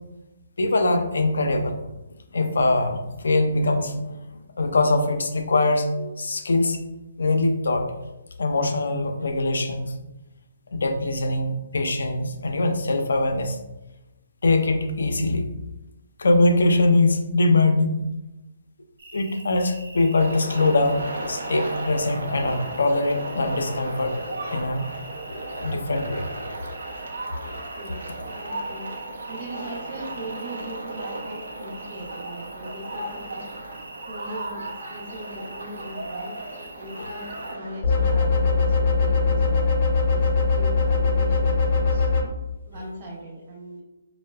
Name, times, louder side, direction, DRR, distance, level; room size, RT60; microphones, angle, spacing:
voice 1, 0.6-1.8 2.3-4.2 4.6-6.8 7.2-7.9 8.4-9.9 10.7-13.6 14.4-15.5 16.2-18.0 19.1-24.9 25.3-26.5 27.4-27.7 37.0-37.1, left 2 dB, 80° left, 6 dB, 0.4 m, -23 dB
sound 1, 19.0-37.5, right 2 dB, 65° right, 0.8 m, -46 dB
sound 2, 20.2-37.8, right 2 dB, 85° right, 0.5 m, -35 dB
voice 2, 27.8-28.9 29.3-33.5 34.1-36.3 36.8-39.6 40.1-42.1 42.6-43.8, equal, 35° right, -5 dB, 0.6 m, -39 dB
sound 3, 37.8-42.2, left 4 dB, 40° left, 0.6 m, -21 dB
4.5 x 2.0 x 2.2 m, 1.0 s
hypercardioid pair, 150°, 0 cm